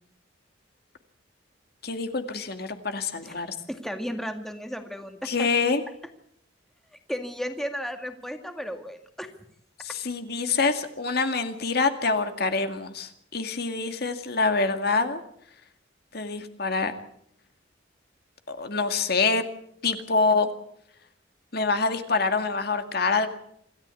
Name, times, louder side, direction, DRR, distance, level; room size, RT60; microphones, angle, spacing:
voice 1, 1.8-3.6 5.2-5.8 9.8-15.2 16.1-16.9 18.5-19.5 19.8-20.5 21.5-23.3, left 4 dB, 55° left, 7 dB, 2.2 m, -26 dB
voice 2, 3.7-5.5 7.1-9.3, equal, ahead, 6 dB, 2.1 m, -34 dB
27.0 x 14.0 x 8.4 m, 0.72 s
head